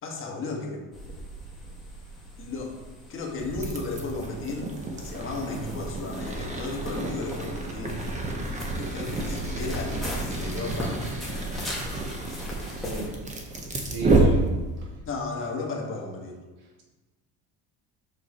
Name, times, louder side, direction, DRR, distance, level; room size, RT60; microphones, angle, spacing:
voice 1, 0.0-0.8 2.4-2.7 3.1-8.0 8.7-11.0 15.0-16.4, left 3 dB, 35° left, 0 dB, 1.5 m, -34 dB
sound 1, 0.9-13.1, equal, ahead, 1.7 m, -38 dB
sound 2, 3.4-15.0, right 2 dB, 20° right, 0.9 m, -30 dB
voice 2, 12.7-13.1 13.9-14.4, right 2 dB, 80° right, -2 dB, 2.4 m, -33 dB
7.4 x 6.1 x 4.2 m, 1.2 s
cardioid pair, 155°, 36 cm